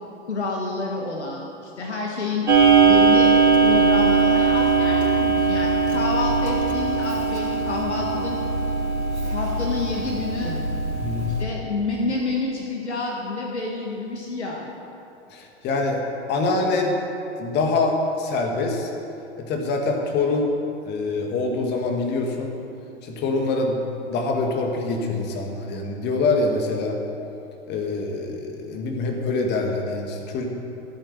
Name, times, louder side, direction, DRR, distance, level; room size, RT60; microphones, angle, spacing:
voice 1, 0.2-2.5 2.8-3.3 3.6-8.4 9.2-10.5 11.4-14.7, left 3 dB, 75° left, -1 dB, 1.8 m, -29 dB
Clock, 2.5-11.4, right 5 dB, 70° right, 3.1 m, -20 dB
voice 2, 11.0-11.4 15.3-16.0 16.3-17.0 17.4-18.9 19.4-20.5 20.9-22.5 23.0-23.8 24.1-27.0 27.7-30.5, left 3 dB, 30° left, 2 dB, 1.9 m, -25 dB
15.0 x 8.9 x 6.8 m, 2.8 s
figure-of-eight pair, 95°, 34 cm